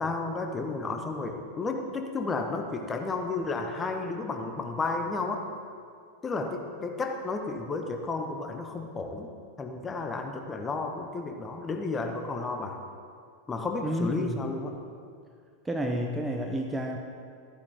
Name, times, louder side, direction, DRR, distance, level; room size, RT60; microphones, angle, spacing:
voice 1, 0.0-5.4 6.2-9.3 9.6-12.8 13.5-14.7, left 3 dB, 15° left, 4 dB, 1.0 m, -32 dB
voice 2, 13.8-14.4 15.6-17.0, equal, 10° right, 2 dB, 0.7 m, -30 dB
13.5 x 9.6 x 3.6 m, 2.2 s
figure-of-eight pair, 90°, 0 cm